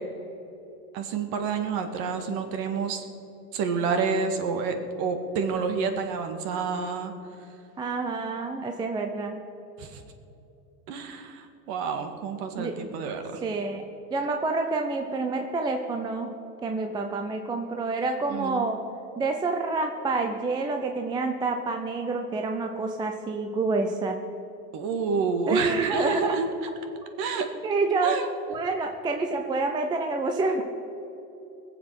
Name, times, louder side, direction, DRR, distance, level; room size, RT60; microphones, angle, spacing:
voice 1, 0.9-3.0 3.5-7.1 9.8-10.0 10.9-13.4 18.3-18.7 24.7-26.5 27.2-27.5 28.0-28.3, right 5 dB, 45° right, 7 dB, 1.9 m, -29 dB
voice 2, 7.8-9.4 12.6-12.9 13.4-13.8 14.1-16.3 16.6-18.8 19.2-24.2 25.5-26.3 27.6-28.2 28.5-30.6, right 3 dB, 10° right, 4 dB, 0.5 m, -28 dB
20.0 x 7.7 x 6.1 m, 3.0 s
hypercardioid pair, 125°, 50 cm